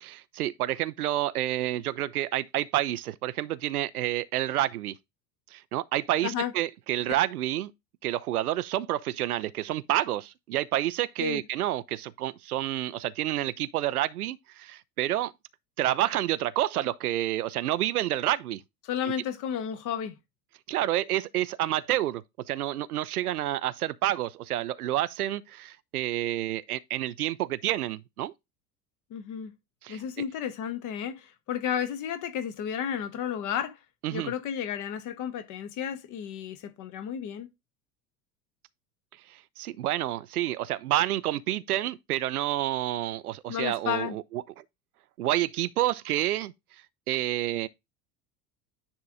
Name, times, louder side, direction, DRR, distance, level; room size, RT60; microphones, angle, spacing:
voice 1, 0.0-4.9 5.5-7.7 8.0-15.3 15.8-18.6 20.7-28.3 29.8-30.0 34.0-34.3 39.3-44.6 45.2-46.5 47.1-47.7, right 13 dB, 70° right, 0.6 m, -29 dB
voice 2, 6.2-6.5 11.2-11.4 18.8-20.1 29.1-29.5 29.9-33.8 34.1-37.5 43.5-44.1, left 9 dB, 40° left, 1.3 m, -32 dB
9.8 x 3.7 x 3.6 m
figure-of-eight pair, 75°, 47 cm